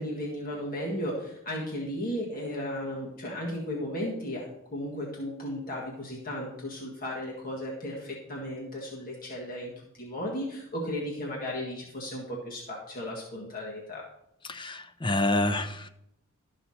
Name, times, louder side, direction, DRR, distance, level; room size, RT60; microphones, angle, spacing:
voice 1, 0.0-14.0, left 1 dB, 45° left, -3 dB, 1.7 m, -35 dB
voice 2, 14.5-15.9, left 2 dB, 25° left, 9 dB, 0.6 m, -28 dB
12.5 x 5.7 x 4.3 m, 0.79 s
head